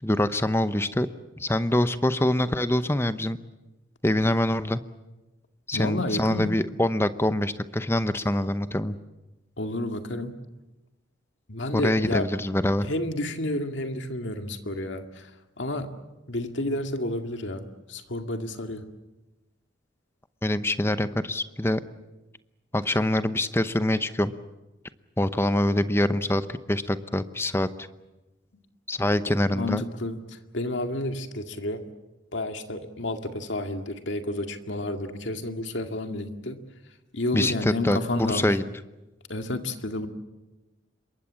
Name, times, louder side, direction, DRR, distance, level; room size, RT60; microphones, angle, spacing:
voice 1, 0.0-1.1 1.4-3.4 4.0-4.8 5.7-9.0 11.7-12.9 20.4-21.8 22.7-24.3 25.2-27.7 28.9-29.8 37.3-38.6, left 1 dB, 10° left, 12 dB, 0.8 m, -25 dB
voice 2, 5.7-6.5 9.6-10.4 11.5-12.3 12.8-15.3 15.6-15.9 16.3-18.9 29.5-31.8 32.3-36.6 37.1-38.5 39.3-40.1, left 1 dB, 65° left, 6 dB, 2.1 m, -30 dB
27.0 x 22.5 x 7.5 m, 1.1 s
head